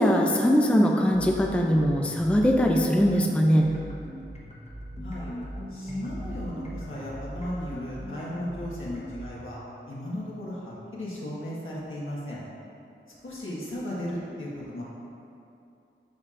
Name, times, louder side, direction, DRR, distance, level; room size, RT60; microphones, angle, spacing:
voice 1, 0.0-3.7, equal, 5° left, 1 dB, 0.4 m, -21 dB
sound 1, 1.1-9.5, equal, 35° left, 1.0 m, -39 dB
voice 2, 5.0-5.3 5.7-9.6 9.9-12.4 13.2-14.8, left 1 dB, 90° left, -7 dB, 1.4 m, -35 dB
11.0 x 4.2 x 2.5 m, 2.6 s
wide cardioid pair, 95°, 20 cm